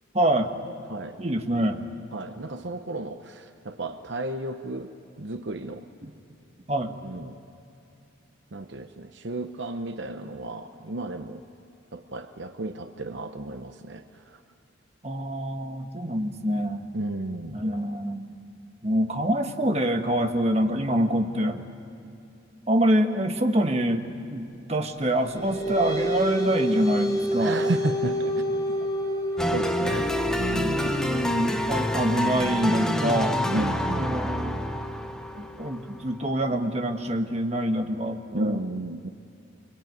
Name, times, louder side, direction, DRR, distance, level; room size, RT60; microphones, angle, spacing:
voice 1, 0.1-0.5 1.2-1.8 6.0-6.1 6.7-6.9 15.0-16.8 17.5-18.3 18.8-21.6 22.7-27.6 30.5-33.4 33.9-34.7 35.4-38.6, right 1 dB, 35° right, 5 dB, 1.4 m, -26 dB
voice 2, 0.9-1.2 2.1-4.9 5.2-5.8 7.0-7.4 8.5-11.4 11.9-14.4 16.9-17.6 27.4-28.4 29.5-31.0 33.5-34.2 38.3-39.1, right 2 dB, 65° right, 8 dB, 0.9 m, -33 dB
sound 1, 25.1-36.0, equal, 20° left, 3.4 m, -30 dB
sound 2, 29.4-36.2, equal, 5° left, 1.0 m, -28 dB
25.5 x 23.5 x 9.3 m, 2.7 s
head